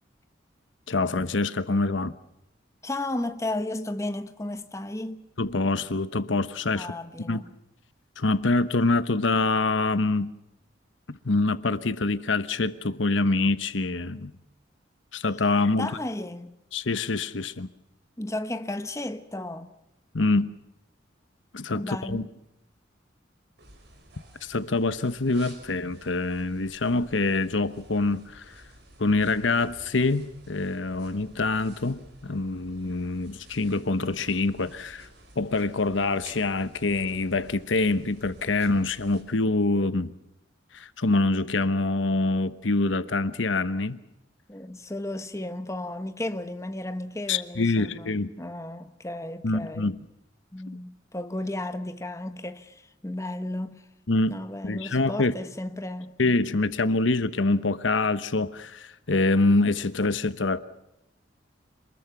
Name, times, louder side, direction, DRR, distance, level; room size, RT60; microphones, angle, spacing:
voice 1, 0.9-2.1 5.4-6.9 7.3-7.4 8.2-10.3 11.1-14.3 15.1-15.9 16.7-17.7 20.1-20.5 21.5-22.3 24.4-28.5 29.0-35.1 35.4-40.1 40.7-44.0 47.3-48.3 49.4-50.0 54.1-54.4 54.6-55.3 56.2-60.6, left 3 dB, 85° left, 1.1 m, -25 dB
voice 2, 2.8-5.3 6.7-7.5 15.7-16.6 18.2-19.7 21.7-22.3 44.5-48.1 48.4-50.0 50.5-53.9 54.3-56.2, left 1 dB, 15° left, 1.1 m, -34 dB
sound 1, 23.6-39.2, right 1 dB, 60° right, 5.6 m, -52 dB
27.0 x 21.0 x 6.0 m
head